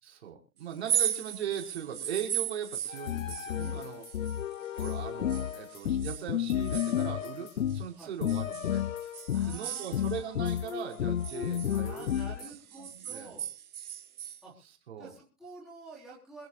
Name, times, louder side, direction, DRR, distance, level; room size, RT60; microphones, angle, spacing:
voice 1, 0.0-4.0 4.7-7.5 7.7-8.8 9.5-13.3 14.9-15.1, right 8 dB, 45° right, 1 dB, 5.6 m, -39 dB
sound 1, 0.7-5.0 5.3-7.8 8.3-10.6 10.9-14.4, right 10 dB, 70° right, 0.9 m, -37 dB
sound 2, 2.9-7.9 8.2-9.6 9.9-12.5, left 10 dB, 55° left, 0.7 m, -32 dB
voice 2, 3.5-3.9 7.9-8.1 9.3-10.4 10.9-13.5 14.4-14.5 15.0-16.5, right 3 dB, ahead, -9 dB, 4.0 m, -50 dB
28.0 x 9.5 x 2.5 m, 0.34 s
hypercardioid pair, 170°, 46 cm